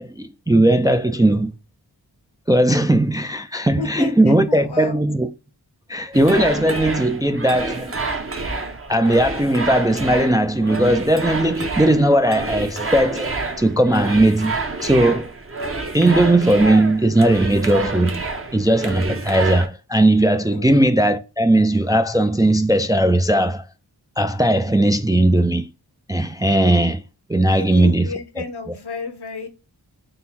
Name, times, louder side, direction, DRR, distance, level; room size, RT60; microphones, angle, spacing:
voice 1, 0.0-1.5 2.5-5.3 5.9-8.0 8.9-15.3 15.9-18.2 18.5-23.6 24.2-25.7 26.1-27.0 27.3-28.1 28.4-28.5, right 1 dB, 10° right, 0.3 m, -18 dB
voice 2, 3.8-5.0 20.5-20.8 27.5-29.5, left 4 dB, 75° left, 0.9 m, -32 dB
sound 1, 6.1-19.7, right 3 dB, 35° right, 0.7 m, -28 dB
3.8 x 2.1 x 4.1 m
wide cardioid pair, 70°, 40 cm